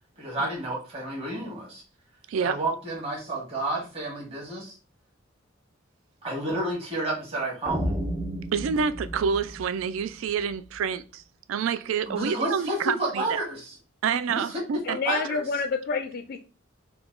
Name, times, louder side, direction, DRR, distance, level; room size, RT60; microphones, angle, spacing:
voice 1, 0.2-1.8 2.4-4.7 6.2-7.9 12.1-13.7 14.3-14.6 15.0-15.4, right 2 dB, 30° right, 1.5 m, -30 dB
voice 2, 2.3-2.6 8.5-11.2 11.5-13.4 14.0-15.0, right 6 dB, 80° right, 0.3 m, -28 dB
sound 1, 7.7-10.8, equal, 5° right, 0.7 m, -33 dB
voice 3, 14.8-16.4, left 4 dB, 50° left, 0.3 m, -28 dB
3.9 x 2.2 x 3.6 m
head